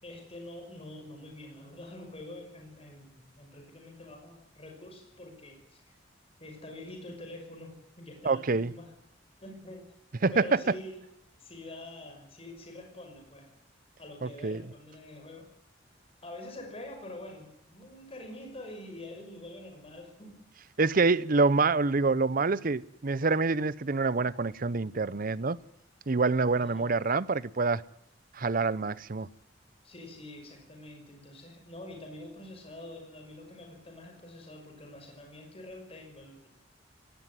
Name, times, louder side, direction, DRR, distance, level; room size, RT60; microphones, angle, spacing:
voice 1, 0.0-5.8 6.4-8.9 9.4-9.9 10.3-11.0 11.4-13.5 14.0-15.5 16.2-20.5 26.5-26.9 29.8-36.5, left 1 dB, 30° left, 5.8 m, -46 dB
voice 2, 8.2-8.7 10.2-10.6 14.2-14.6 20.8-25.6 26.1-27.8 28.3-29.3, right 4 dB, 50° right, 0.7 m, -26 dB
19.0 x 17.0 x 9.7 m
head